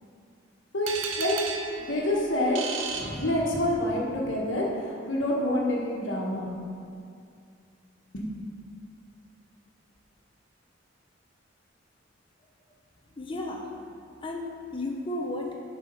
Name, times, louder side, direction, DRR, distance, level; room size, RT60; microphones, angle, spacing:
voice 1, 0.7-1.4 1.8-2.6 2.9-6.5 8.1-8.3, left 1 dB, 70° left, -3 dB, 1.3 m, -27 dB
sound 1, 0.9-3.9, right 6 dB, 70° right, 0.6 m, -35 dB
voice 2, 13.2-13.7 14.2-15.6, left 2 dB, 25° left, 0 dB, 0.7 m, -33 dB
7.3 x 4.8 x 5.4 m, 2.3 s
head